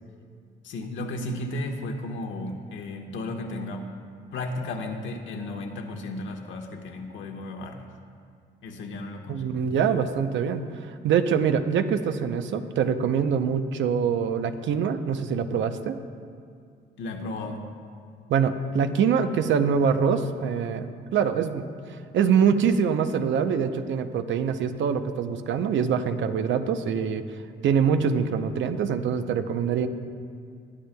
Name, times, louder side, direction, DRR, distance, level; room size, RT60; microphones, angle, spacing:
voice 1, 0.6-3.9 4.3-7.8 8.6-9.5 17.0-17.7, left 2 dB, 75° left, 2 dB, 1.3 m, -34 dB
voice 2, 9.3-10.7 11.0-16.0 18.3-20.9 21.1-21.7 22.1-27.2 27.6-29.9, right 7 dB, 70° right, 9 dB, 0.7 m, -24 dB
21.0 x 10.5 x 2.3 m, 2.3 s
cardioid pair, 90°, 20 cm